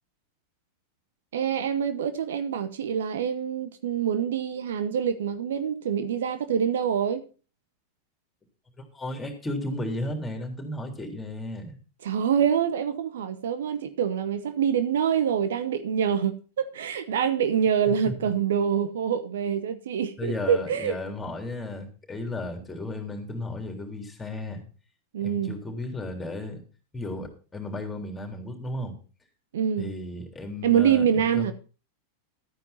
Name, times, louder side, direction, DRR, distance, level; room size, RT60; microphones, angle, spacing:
voice 1, 1.3-7.2 12.0-21.0 25.1-25.6 29.5-29.9 30.6-31.5, right 8 dB, 60° right, 1.0 m, -25 dB
voice 2, 8.9-11.8 18.1-18.2 20.2-24.6 25.2-26.6 26.9-28.9 29.8-31.5, left 1 dB, 10° left, 3.6 m, -34 dB
13.5 x 9.3 x 4.3 m
figure-of-eight pair, 90°, 0 cm